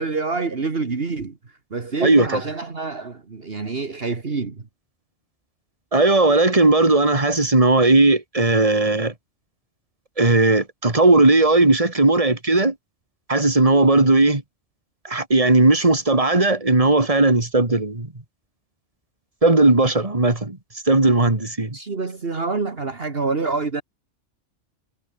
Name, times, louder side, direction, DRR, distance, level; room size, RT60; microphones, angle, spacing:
voice 1, 0.0-1.4 1.7-4.6 21.7-23.8, right 4 dB, 55° right, 2.1 m, -26 dB
voice 2, 2.0-2.4 5.9-9.1 10.2-12.7 13.3-14.4 15.0-18.1 19.4-20.6 20.9-21.8, right 2 dB, 30° right, 2.8 m, -17 dB
omnidirectional pair, 1.2 m